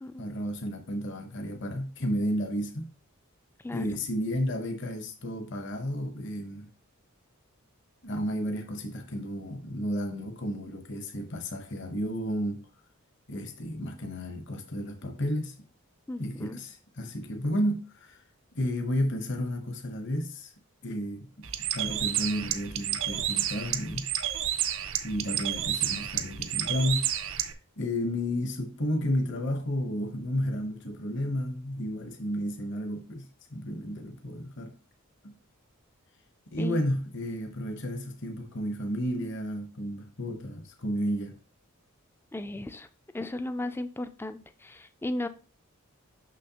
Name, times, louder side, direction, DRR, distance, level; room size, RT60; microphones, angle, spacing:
voice 1, 0.2-2.9 3.7-6.7 8.0-12.6 13.3-15.6 16.2-18.2 18.5-20.5 20.8-24.1 25.0-27.1 27.4-27.5 27.8-34.7 35.2-35.4 36.5-41.4, equal, 55° left, 0.9 m, -32 dB
voice 2, 16.1-16.6 36.6-36.8 42.3-42.9 43.1-45.3, left 2 dB, 10° left, 0.3 m, -35 dB
Bird, 21.4-27.5, right 11 dB, 60° right, 0.5 m, -30 dB
6.3 x 6.0 x 2.8 m
head